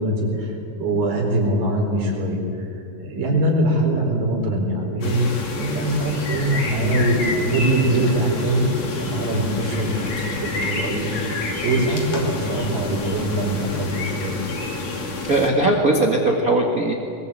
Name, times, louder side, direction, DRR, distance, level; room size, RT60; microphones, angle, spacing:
voice 1, 0.0-2.7 3.0-8.7 8.9-14.4, right 1 dB, 80° right, 0 dB, 6.2 m, -23 dB
sound 1, 5.0-15.5, left 3 dB, 50° left, 3.6 m, -28 dB
voice 2, 15.3-16.9, right 2 dB, 35° right, 1 dB, 1.7 m, -19 dB
22.5 x 21.5 x 8.6 m, 2.7 s
omnidirectional pair, 4.1 m